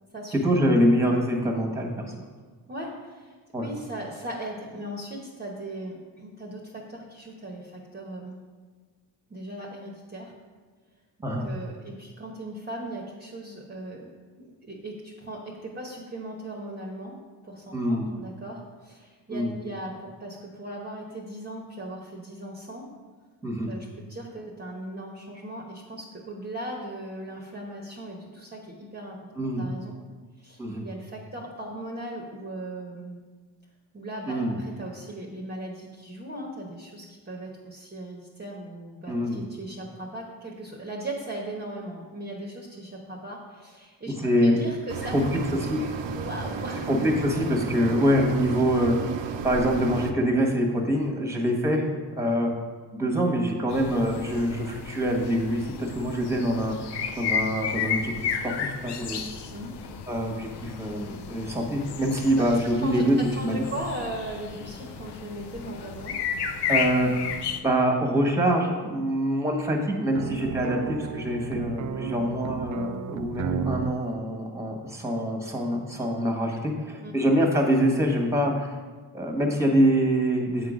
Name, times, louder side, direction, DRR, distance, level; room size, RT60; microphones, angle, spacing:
voice 1, 0.4-2.1 3.5-3.7 11.2-11.5 17.7-18.1 19.3-19.5 23.4-23.7 29.4-29.7 30.6-30.8 34.3-34.6 39.1-39.4 44.2-44.6 45.1-45.2 45.7-45.8 46.9-49.0 49.4-51.8 52.2-52.5 52.9-59.2 60.1-63.7 66.7-67.3 67.6-78.8 79.1-80.7, equal, 5° right, 1 dB, 1.3 m, -25 dB
voice 2, 2.7-3.3 3.6-8.4 9.3-10.3 11.4-14.1 14.4-17.2 17.4-22.8 23.7-29.2 29.6-30.0 30.4-33.2 33.9-44.1 44.4-45.1 45.8-46.9 59.5-59.7 62.8-66.2 77.0-77.1, right 1 dB, 20° right, -1 dB, 1.0 m, -38 dB
sound 1, 44.9-50.1, right 5 dB, 70° right, 0.7 m, -33 dB
sound 2, 53.7-67.6, left 7 dB, 65° left, 0.7 m, -33 dB
sound 3, 70.1-74.0, right 7 dB, 45° right, 0.4 m, -32 dB
7.9 x 3.8 x 5.1 m, 1.4 s
cardioid pair, 80°, 44 cm